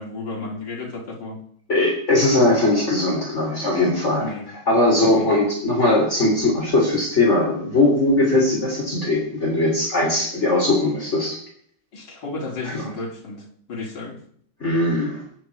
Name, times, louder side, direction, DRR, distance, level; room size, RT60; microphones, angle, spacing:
voice 1, 0.0-1.4 4.2-4.5 5.0-5.3 11.9-14.2, left 3 dB, 60° left, 1 dB, 3.4 m, -33 dB
voice 2, 1.7-4.2 4.7-11.4 12.6-12.9 14.6-15.2, left 2 dB, 35° left, -1 dB, 3.5 m, -20 dB
21.5 x 9.3 x 4.7 m, 0.62 s
omnidirectional pair, 2.2 m